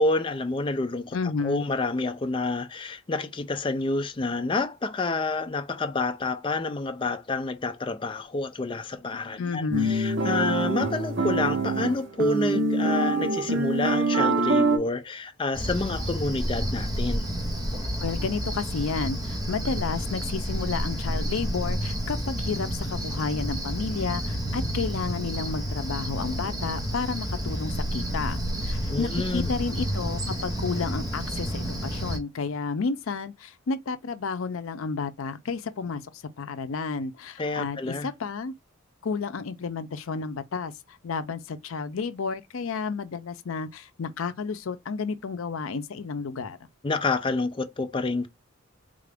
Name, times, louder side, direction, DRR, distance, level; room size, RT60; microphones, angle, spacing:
voice 1, 0.0-1.2 1.4-17.3 28.9-29.6 37.4-38.1 46.8-48.3, left 3 dB, 25° left, 0.4 m, -28 dB
voice 2, 1.1-1.7 9.4-9.9 18.0-36.0 36.4-38.5 39.0-46.6, left 4 dB, 80° left, 0.5 m, -31 dB
sound 1, 9.7-14.8, right 2 dB, 55° right, 0.8 m, -25 dB
Cricket, 15.5-32.2, equal, 20° right, 1.0 m, -30 dB
3.8 x 2.4 x 3.4 m
head